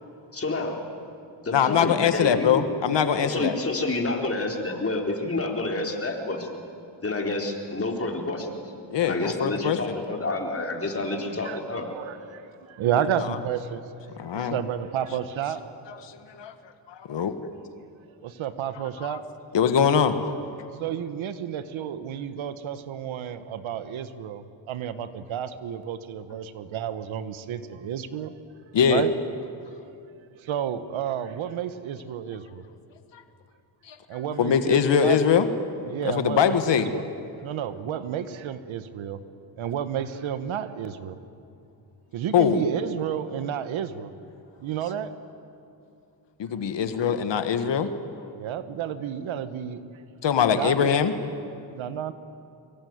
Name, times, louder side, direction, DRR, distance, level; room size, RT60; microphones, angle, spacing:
voice 1, 0.3-0.8 1.4-2.6 3.2-6.5 7.0-8.5 9.0-11.9, left 2 dB, 30° left, 2 dB, 4.1 m, -29 dB
voice 2, 1.5-3.6 8.9-10.0 13.2-13.4 14.2-14.6 16.0-16.5 16.9-17.3 19.1-19.2 19.5-20.3 28.7-29.0 33.1-33.2 33.9-34.0 34.4-35.5 36.0-36.9 42.3-42.6 46.4-47.9 50.2-51.1, left 7 dB, 65° left, 9 dB, 1.6 m, -22 dB
voice 3, 11.1-11.6 11.9-15.6 15.9-16.1 18.2-19.2 20.8-28.3 28.9-29.1 30.4-32.6 34.1-35.2 35.9-37.0 37.4-39.2 39.6-41.2 42.1-44.1 44.6-45.1 48.3-49.8 50.6-50.9 51.7-52.1, right 9 dB, 85° right, 12 dB, 1.4 m, -31 dB
25.0 x 22.5 x 9.5 m, 2.6 s
cardioid pair, 85°, 46 cm